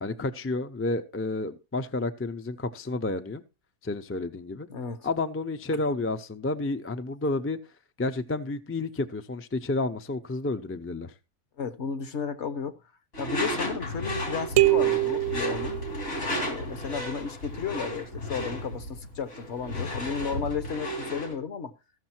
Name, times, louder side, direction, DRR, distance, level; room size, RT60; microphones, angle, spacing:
voice 1, 0.0-3.4 3.8-4.7 5.0-7.6 8.0-11.1, left 2 dB, 20° left, 0.4 m, -30 dB
voice 2, 4.7-5.1 11.6-12.8 13.2-15.8 16.4-21.7, left 6 dB, 55° left, 1.2 m, -33 dB
Door / Screech, 13.1-21.4, left 1 dB, 75° left, 3.6 m, -33 dB
sound 1, 14.6-16.4, right 18 dB, 70° right, 1.1 m, -24 dB
14.5 x 6.4 x 4.4 m
omnidirectional pair, 1.4 m